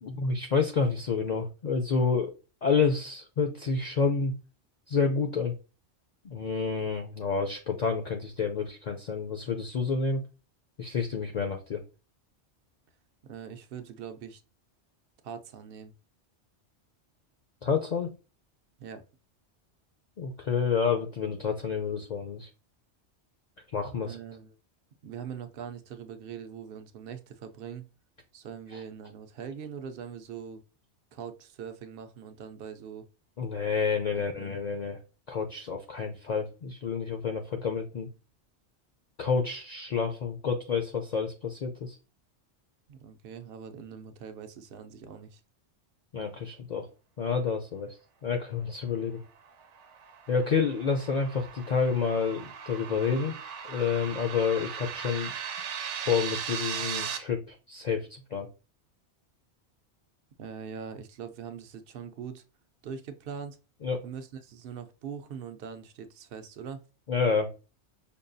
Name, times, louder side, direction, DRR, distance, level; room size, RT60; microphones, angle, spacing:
voice 1, 0.0-2.3 2.6-4.3 4.9-5.5 6.2-10.2 10.8-11.8 17.6-18.1 20.2-22.5 23.7-24.2 28.7-28.8 33.4-35.0 35.3-38.1 39.2-42.0 46.1-46.9 47.2-49.2 50.3-53.4 53.6-55.3 56.1-58.5 63.8-64.1 67.1-67.5, left 5 dB, 55° left, 0.5 m, -29 dB
voice 2, 13.2-14.4 15.2-15.9 18.8-19.0 24.0-24.6 25.0-27.9 28.3-30.6 31.1-33.1 34.1-34.6 42.9-45.4 60.4-62.4 62.8-63.6 64.0-66.8, right 7 dB, 65° right, 0.7 m, -42 dB
sound 1, 49.5-57.2, right 7 dB, 85° right, 0.9 m, -38 dB
5.3 x 2.3 x 2.5 m
omnidirectional pair, 1.2 m